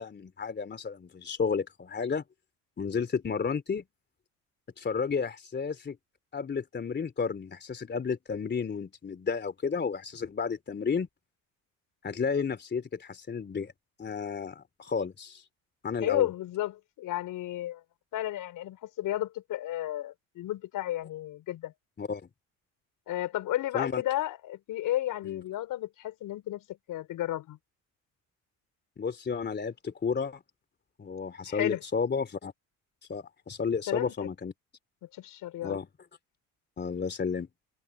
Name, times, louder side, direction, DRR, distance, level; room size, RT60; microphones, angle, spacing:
voice 1, 0.0-2.2 2.8-3.8 4.8-6.0 6.3-11.1 12.0-13.7 14.0-15.4 15.8-16.3 22.0-22.2 23.7-24.0 25.2-25.4 29.0-30.4 31.0-32.5 33.1-34.5 35.6-35.9 36.8-37.5, left 5 dB, 30° left, 3.2 m, -32 dB
voice 2, 16.0-17.8 18.1-21.7 23.1-27.6 31.5-31.8 33.9-34.1 35.1-35.8, left 14 dB, 65° left, 5.4 m, -33 dB
supercardioid pair, 90°, 34 cm